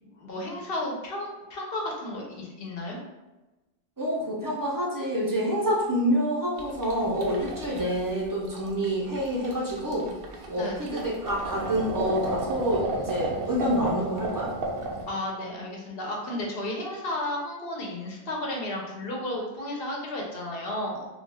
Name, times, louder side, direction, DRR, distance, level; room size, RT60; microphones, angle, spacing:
voice 1, 0.0-3.0 10.6-10.9 15.1-21.1, left 1 dB, 70° left, -1 dB, 0.8 m, -33 dB
voice 2, 4.0-10.1 10.5-14.5, equal, 30° right, -5 dB, 0.4 m, -27 dB
sound 1, 6.6-15.1, right 2 dB, 70° right, 0.7 m, -33 dB
2.3 x 2.2 x 3.3 m, 1.1 s
omnidirectional pair, 1.0 m